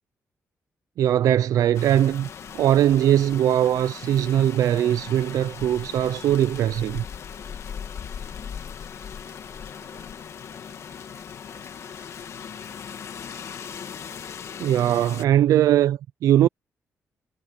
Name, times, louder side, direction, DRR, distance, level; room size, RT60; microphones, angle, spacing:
voice 1, 1.0-2.3 2.5-7.0 14.6-16.5, right 11 dB, 85° right, 0.4 m, -20 dB
Rain, 1.7-15.3, left 7 dB, 60° left, 1.8 m, -38 dB
voice 2, 8.1-8.6 9.2-13.0, right 6 dB, 45° right, 8.0 m, -60 dB
wide cardioid pair, 140°, 6 cm